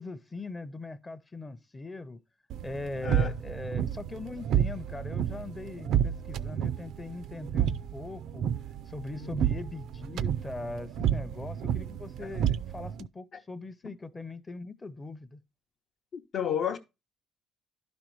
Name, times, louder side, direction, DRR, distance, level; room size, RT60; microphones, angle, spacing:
voice 1, 0.0-2.2 2.6-8.5 8.9-15.4, left 2 dB, 20° left, 0.6 m, -41 dB
sound 1, 2.5-13.1, right 10 dB, 70° right, 0.4 m, -31 dB
voice 2, 3.0-3.3 9.2-9.4 12.2-12.3 13.3-13.4 13.8-13.9 16.1-16.8, left 8 dB, 60° left, 0.7 m, -32 dB
11.5 x 5.2 x 4.5 m
cardioid pair, 125°, 0 cm